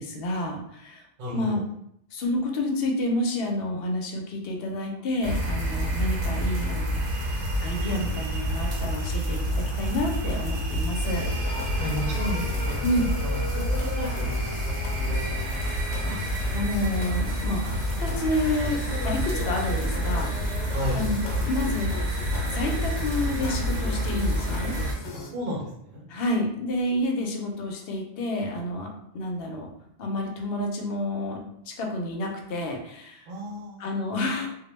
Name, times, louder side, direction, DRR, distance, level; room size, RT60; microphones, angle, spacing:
voice 1, 0.0-1.0 1.3-1.6 2.1-7.1 7.6-11.6 12.8-13.1 16.1-18.8 19.0-21.2 21.5-21.9 22.4-24.8 26.1-28.9 29.1-29.7 30.0-31.4 31.7-33.3 33.8-34.5, left 1 dB, 65° left, 2 dB, 0.7 m, -29 dB
voice 2, 1.2-1.6 11.7-14.3 15.0-16.0 20.7-21.0 25.1-26.0 33.3-33.8, equal, 55° right, -4 dB, 0.8 m, -34 dB
sound 1, 5.2-24.9, equal, 80° right, 1.0 m, -28 dB
sound 2, 11.0-25.3, left 3 dB, 90° left, 0.9 m, -38 dB
2.2 x 2.1 x 3.0 m, 0.73 s
omnidirectional pair, 1.2 m